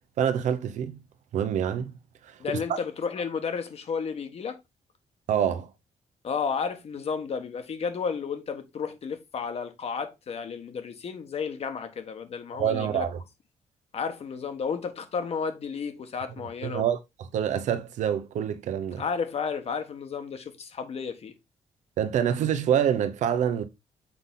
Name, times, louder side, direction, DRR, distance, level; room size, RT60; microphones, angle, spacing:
voice 1, 0.2-1.0 1.3-2.0 2.2-2.4 5.3-5.7 12.5-13.2 16.6-17.0 17.3-19.0 22.0-23.6, right 9 dB, 75° right, 0.9 m, -26 dB
voice 2, 2.4-4.6 6.2-13.1 13.9-16.8 19.0-21.3, left 6 dB, 55° left, 1.4 m, -32 dB
6.8 x 4.1 x 3.8 m
cardioid pair, 80°, 13 cm